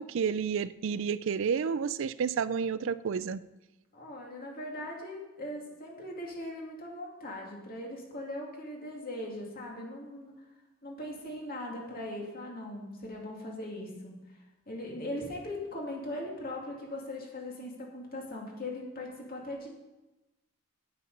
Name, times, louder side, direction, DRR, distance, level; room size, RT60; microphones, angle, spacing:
voice 1, 0.0-3.4, right 6 dB, 65° right, 17 dB, 0.4 m, -30 dB
voice 2, 3.9-10.3 10.8-14.2 14.7-19.7, left 1 dB, 45° left, -1 dB, 2.4 m, -40 dB
9.5 x 8.8 x 5.5 m, 1.0 s
head